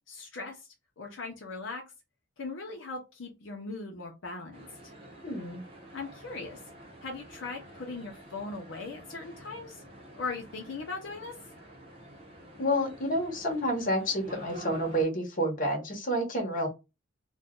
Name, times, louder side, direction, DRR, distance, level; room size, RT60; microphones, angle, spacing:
voice 1, 0.1-0.7 1.0-1.8 2.4-4.9 5.9-6.6 7.0-9.8 10.2-11.3, left 3 dB, 75° left, 1 dB, 0.7 m, -39 dB
sound 1, 4.5-15.0, equal, 30° right, 0.7 m, -48 dB
voice 2, 5.2-5.6 12.6-16.7, equal, 45° left, 1 dB, 1.1 m, -29 dB
2.6 x 2.2 x 3.6 m, 0.26 s
head